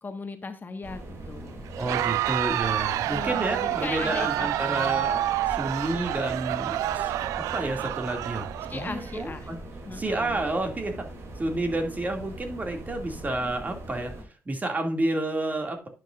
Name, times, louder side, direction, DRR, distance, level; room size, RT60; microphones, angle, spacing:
voice 1, 0.0-1.6 3.1-5.1 8.7-9.5 9.8-10.4, left 3 dB, 35° left, 7 dB, 1.5 m, -38 dB
sound 1, 0.8-14.2, right 1 dB, 60° right, 3.0 m, -41 dB
Crowd, 1.7-9.2, right 13 dB, 90° right, 0.4 m, -29 dB
voice 2, 1.8-9.6 9.9-11.0 11.4-14.1 14.5-15.9, right 2 dB, 30° right, 4 dB, 2.4 m, -30 dB
10.5 x 6.5 x 2.6 m, 0.33 s
cardioid pair, 70°, 5 cm